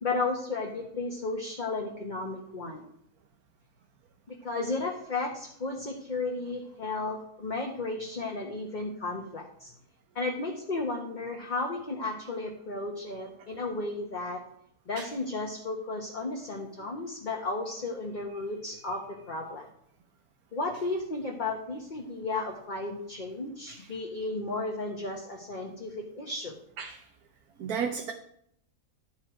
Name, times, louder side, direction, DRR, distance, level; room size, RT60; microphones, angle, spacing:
voice 1, 0.0-2.8 4.3-9.7 10.1-14.4 14.9-19.7 20.5-26.6, left 3 dB, 35° left, 0 dB, 1.4 m, -34 dB
voice 2, 26.8-27.1 27.6-28.1, right 6 dB, 80° right, 4 dB, 1.4 m, -34 dB
12.0 x 7.7 x 5.0 m, 0.70 s
omnidirectional pair, 1.5 m